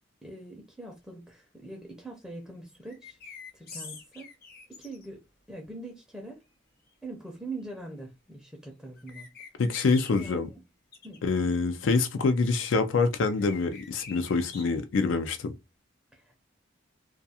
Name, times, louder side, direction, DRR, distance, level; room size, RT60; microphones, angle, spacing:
voice 1, 0.2-3.2 3.5-4.3 4.7-5.2 5.5-6.4 7.0-9.3 10.1-10.6 11.0-11.2 16.1-16.4, right 2 dB, 5° right, 0.5 m, -43 dB
sound 1, 2.8-5.1 9.0-10.3 10.9-11.2 13.2-14.6, left 5 dB, 50° left, 0.7 m, -45 dB
voice 2, 9.6-10.5 11.2-15.5, left 4 dB, 85° left, 0.4 m, -26 dB
2.3 x 2.3 x 2.7 m
head